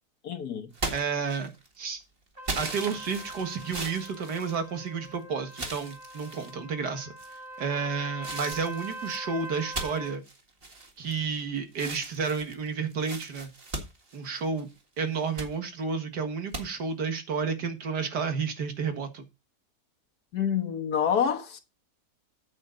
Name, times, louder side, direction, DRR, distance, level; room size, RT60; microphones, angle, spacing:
voice 1, 0.2-0.7 20.3-21.6, left 8 dB, 70° left, 1.9 m, -27 dB
sound 1, 0.7-1.8 2.4-5.1 5.5-6.5 7.2-7.6 8.2-11.4 11.7-14.7 15.1-15.5 16.5-16.6, right 2 dB, 35° right, 2.0 m, -38 dB
voice 2, 0.9-1.5 1.8-2.0 2.6-7.1 7.6-10.2 11.0-13.5 14.1-14.7 15.0-19.2, right 5 dB, 85° right, 2.2 m, -31 dB
Trumpet, 2.4-10.2, right 1 dB, 15° right, 2.1 m, -42 dB
8.6 x 8.0 x 3.9 m
omnidirectional pair, 1.7 m